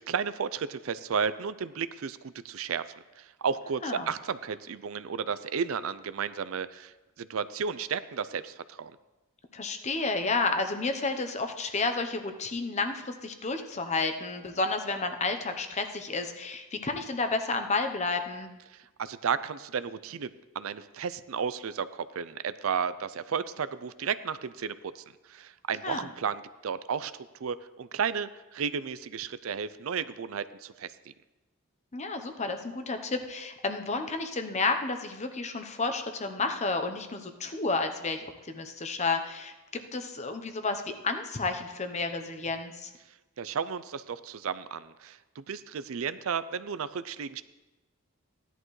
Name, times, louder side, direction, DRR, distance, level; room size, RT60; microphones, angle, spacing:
voice 1, 0.0-2.8 3.2-8.9 19.0-20.3 20.6-30.9 43.4-47.4, right 6 dB, 75° right, 15 dB, 0.5 m, -33 dB
voice 2, 9.5-18.5 25.8-26.1 31.9-42.9, left 3 dB, 35° left, 7 dB, 0.8 m, -31 dB
16.0 x 11.0 x 3.2 m, 1.1 s
head